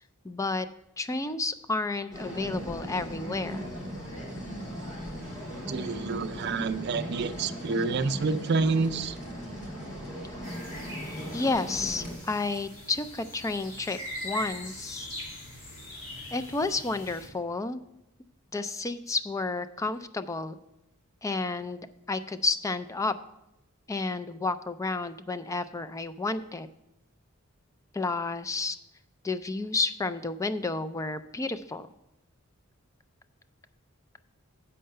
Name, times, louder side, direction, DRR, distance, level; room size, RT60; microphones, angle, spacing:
voice 1, 0.2-0.7 1.0-3.7 7.5-7.8 11.3-14.0 14.2-15.1 16.3-17.8 18.5-20.6 21.2-23.1 23.9-26.7 27.9-28.8 29.2-31.9, left 3 dB, 15° left, 12 dB, 0.3 m, -31 dB
sound 1, 2.1-12.1, equal, 35° left, 1.9 m, -38 dB
voice 2, 5.7-9.1, right 4 dB, 50° right, 10 dB, 0.5 m, -28 dB
sound 2, 10.4-17.3, left 1 dB, 85° left, 2.4 m, -41 dB
7.7 x 5.5 x 6.4 m, 0.89 s
head